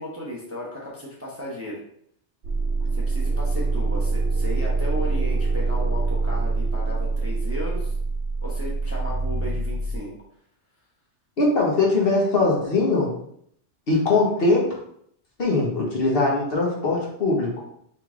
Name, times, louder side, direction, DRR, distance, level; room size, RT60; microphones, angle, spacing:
voice 1, 0.0-1.8 2.9-7.9 8.4-10.1, left 1 dB, 15° right, -5 dB, 0.8 m, -35 dB
sound 1, 2.4-10.0, right 3 dB, 80° right, 0.9 m, -25 dB
voice 2, 11.4-13.1 13.9-14.6 15.4-17.5, left 3 dB, 55° left, -3 dB, 1.2 m, -21 dB
3.3 x 3.3 x 3.6 m, 0.69 s
omnidirectional pair, 1.2 m